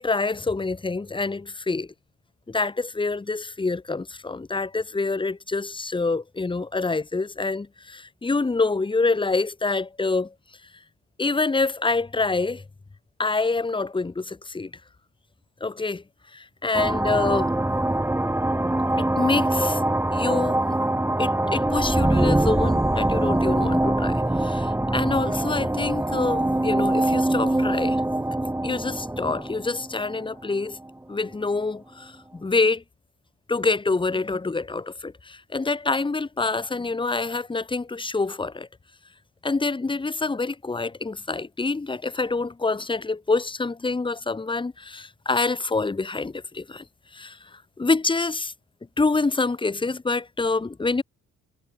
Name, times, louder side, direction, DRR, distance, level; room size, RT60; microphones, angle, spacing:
voice 1, 0.0-1.9 2.5-10.3 11.2-12.6 13.2-14.7 15.6-16.0 16.3-17.6 19.0-19.8 20.1-20.8 21.2-28.0 28.6-30.8 31.1-32.8 33.5-38.7 39.4-46.8 47.1-48.5 49.0-51.0, left 3 dB, 15° left, 1.1 m, -26 dB
sound 1, 16.7-30.9, right 1 dB, 10° right, 2.1 m, -23 dB
cardioid pair, 90°, 30 cm